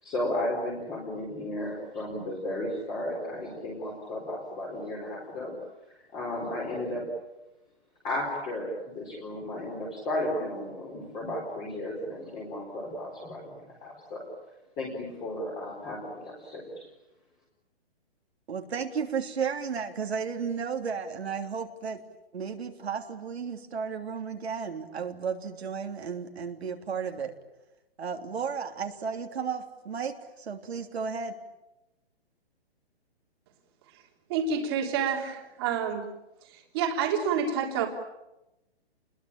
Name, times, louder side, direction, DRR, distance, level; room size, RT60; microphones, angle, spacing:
voice 1, 0.0-5.5 6.1-7.0 8.0-14.3 14.8-16.9, left 1 dB, 15° left, -2 dB, 4.2 m, -34 dB
voice 2, 18.5-22.0 22.3-27.3 28.0-31.3, right 6 dB, 70° right, 4 dB, 3.3 m, -33 dB
voice 3, 34.3-36.1 36.5-37.9, right 6 dB, 20° right, 3 dB, 3.4 m, -28 dB
30.0 x 21.5 x 8.8 m, 0.95 s
hypercardioid pair, 175°, 33 cm